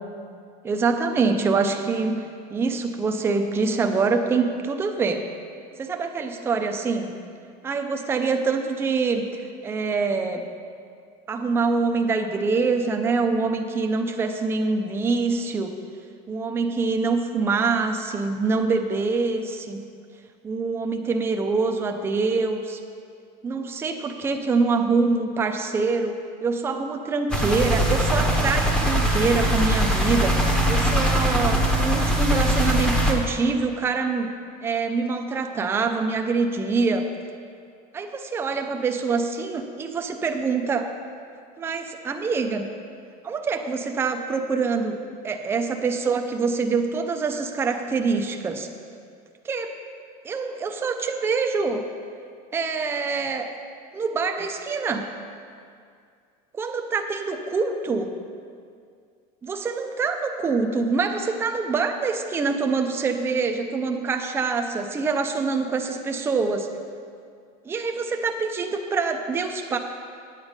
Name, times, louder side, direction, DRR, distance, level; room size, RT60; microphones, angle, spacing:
voice 1, 0.6-5.3 5.8-7.1 7.6-10.5 11.3-15.8 16.3-19.8 20.4-22.8 23.4-34.3 34.6-37.1 37.9-40.9 41.6-42.7 43.2-45.0 45.2-48.7 49.4-49.7 50.2-51.8 52.5-53.5 53.9-55.1 56.5-58.1 59.4-66.7 67.7-69.8, right 4 dB, 10° right, 4 dB, 0.4 m, -25 dB
sound 1, 27.3-33.1, right 1 dB, 5° left, 0.8 m, -21 dB
8.9 x 8.1 x 5.2 m, 2.3 s
cardioid pair, 170°, 20 cm